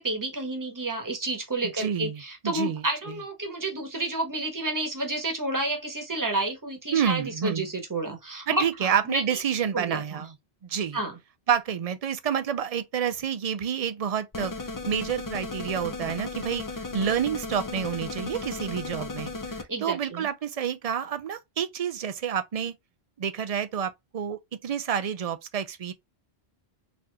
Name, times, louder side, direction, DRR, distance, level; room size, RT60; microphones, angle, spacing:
voice 1, 0.0-9.4 9.7-10.2 10.9-11.2 19.7-20.3, right 2 dB, 20° right, 1.1 m, -30 dB
voice 2, 1.8-2.8 6.9-7.7 8.5-10.3 10.6-11.0 11.5-14.5 14.9-19.3 19.8-22.7 23.2-25.9, right 8 dB, 50° right, 0.5 m, -28 dB
sound 1, 14.3-19.6, left 3 dB, 25° left, 0.4 m, -35 dB
4.2 x 2.8 x 2.3 m
omnidirectional pair, 1.1 m